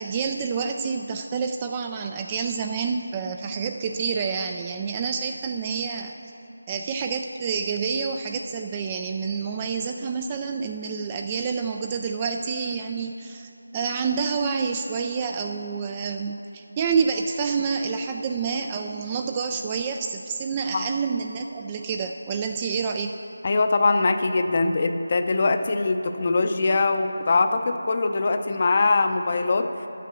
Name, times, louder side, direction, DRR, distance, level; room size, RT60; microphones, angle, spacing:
voice 1, 0.0-6.1 6.7-23.1 28.5-28.6, right 5 dB, 20° right, 5 dB, 0.3 m, -28 dB
voice 2, 23.4-29.7, left 3 dB, 40° left, 8 dB, 0.6 m, -22 dB
10.5 x 8.3 x 6.0 m, 2.9 s
figure-of-eight pair, 165°, 0 cm